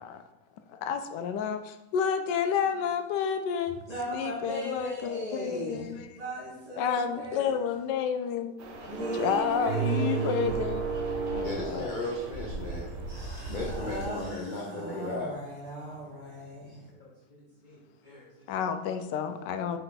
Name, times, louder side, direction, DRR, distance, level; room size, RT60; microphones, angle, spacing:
voice 1, 0.8-1.6 1.9-3.8 4.1-6.2 6.8-8.6 9.1-10.9 11.2-11.9 18.5-19.8, left 7 dB, 85° left, 1.2 m, -30 dB
voice 2, 3.9-7.5 8.9-10.4 13.1-16.8, equal, 20° right, 2.2 m, -38 dB
sound 1, 8.6-14.1, right 3 dB, 90° right, 1.6 m, -34 dB
Keyboard (musical), 9.6-11.9, right 13 dB, 65° right, 1.0 m, -34 dB
voice 3, 11.4-12.9 13.5-15.3 17.0-18.3, left 1 dB, 40° left, 0.7 m, -36 dB
5.5 x 4.6 x 3.9 m
omnidirectional pair, 1.8 m